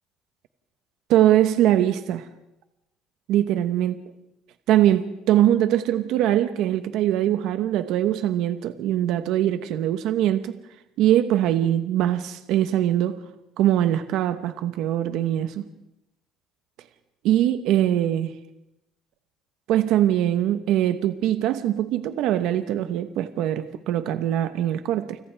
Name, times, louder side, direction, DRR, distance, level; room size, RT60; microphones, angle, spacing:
voice 1, 1.1-2.3 3.3-4.0 4.7-10.6 11.0-13.2 13.6-15.6 17.2-18.3 19.7-25.2, right 12 dB, 75° right, 9 dB, 1.0 m, -22 dB
29.5 x 25.5 x 3.5 m, 0.91 s
cardioid pair, 110°, 0 cm